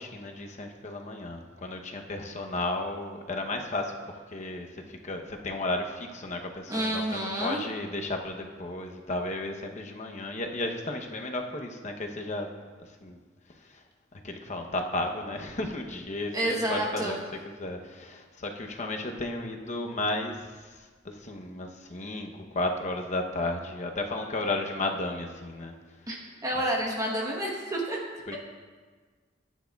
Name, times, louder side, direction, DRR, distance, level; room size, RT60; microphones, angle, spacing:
voice 1, 0.0-4.0 4.3-12.5 13.0-13.2 14.1-17.2 17.4-20.4 21.0-25.7 28.3-28.4, left 2 dB, 40° left, 3 dB, 0.8 m, -33 dB
voice 2, 6.7-7.6 16.3-17.2 26.1-28.0, right 1 dB, 20° right, -2 dB, 1.1 m, -29 dB
14.0 x 9.3 x 2.3 m, 1.5 s
head